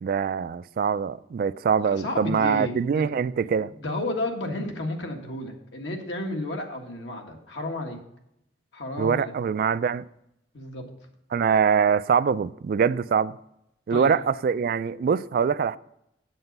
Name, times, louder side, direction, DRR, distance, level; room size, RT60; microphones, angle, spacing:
voice 1, 0.0-3.7 9.0-10.0 11.3-13.4 13.9-15.8, right 6 dB, 50° right, 0.3 m, -23 dB
voice 2, 1.8-3.1 3.7-8.0 8.7-9.3 10.5-10.8 13.9-14.1, left 1 dB, 80° left, 1.7 m, -32 dB
7.9 x 7.8 x 5.3 m
head